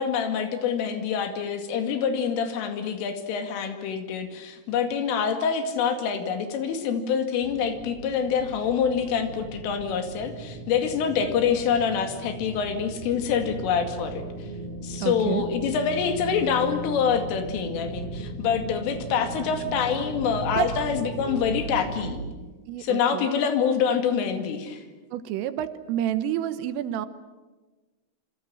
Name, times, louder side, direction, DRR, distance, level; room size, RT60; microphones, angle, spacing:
voice 1, 0.0-14.5 14.8-22.2 22.8-24.8, left 7 dB, 75° left, 7 dB, 4.7 m, -26 dB
sound 1, 7.4-22.3, right 1 dB, 45° right, 2.7 m, -37 dB
voice 2, 15.0-15.5 20.6-20.7 22.7-23.4 25.1-27.1, right 11 dB, 80° right, 12 dB, 3.7 m, -29 dB
27.0 x 25.5 x 7.8 m, 1.2 s
omnidirectional pair, 6.0 m